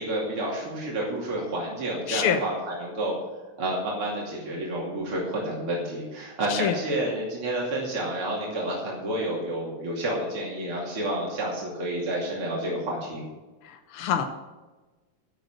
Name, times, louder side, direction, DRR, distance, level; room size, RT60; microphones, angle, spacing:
voice 1, 0.0-3.1 3.6-13.2, right 1 dB, 80° right, -4 dB, 3.6 m, -30 dB
voice 2, 2.1-2.4 6.5-6.8 13.6-14.2, left 8 dB, 80° left, 6 dB, 1.9 m, -26 dB
12.0 x 8.0 x 7.8 m, 1.2 s
omnidirectional pair, 2.4 m